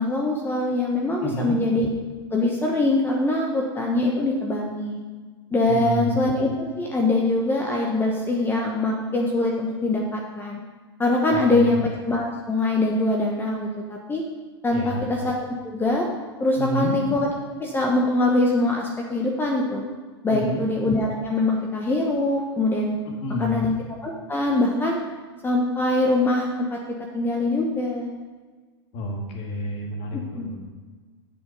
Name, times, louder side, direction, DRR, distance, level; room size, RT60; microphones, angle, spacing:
voice 1, 0.0-1.9 2.3-5.0 5.5-6.5 6.8-10.6 11.0-14.2 14.6-15.3 15.6-16.1 16.4-17.3 17.6-19.9 20.2-23.0 23.4-23.7 24.0-25.0 25.4-26.8 27.1-28.1 30.4-30.5, left 2 dB, 15° left, 0 dB, 1.1 m, -23 dB
voice 2, 1.2-1.6 5.6-6.2 11.3-11.8 14.7-15.1 16.6-17.0 20.3-20.6 23.2-23.7 28.9-30.6, equal, 45° left, 0 dB, 2.4 m, -29 dB
7.9 x 6.8 x 5.4 m, 1.4 s
hypercardioid pair, 115°, 14 cm